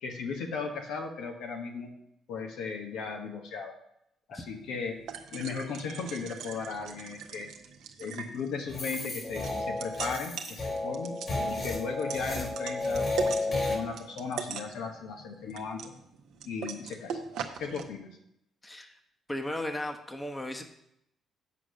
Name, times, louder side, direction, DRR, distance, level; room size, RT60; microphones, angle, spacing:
voice 1, 0.0-1.9 2.3-3.7 4.3-5.0 5.3-7.5 8.0-11.2 11.5-13.1 13.5-15.9 16.4-17.2 17.6-18.1, left 5 dB, 75° left, 3 dB, 1.1 m, -36 dB
sound 1, 4.5-17.8, right 7 dB, 75° right, 0.8 m, -41 dB
sound 2, 8.7-13.8, left 2 dB, 40° left, 2.3 m, -32 dB
voice 2, 18.6-19.0 19.3-20.6, left 1 dB, 20° left, 5 dB, 1.1 m, -36 dB
7.4 x 4.9 x 6.3 m, 0.79 s
supercardioid pair, 60°, 0 cm